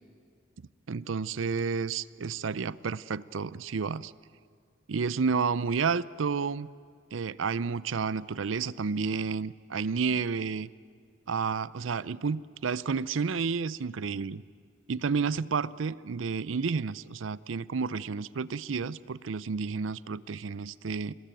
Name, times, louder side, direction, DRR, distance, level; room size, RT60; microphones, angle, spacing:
voice 1, 0.9-4.1 4.9-6.7 7.1-10.7 11.3-14.4 14.9-21.1, right 5 dB, 90° right, 19 dB, 0.6 m, -31 dB
26.5 x 20.0 x 9.0 m, 2.2 s
head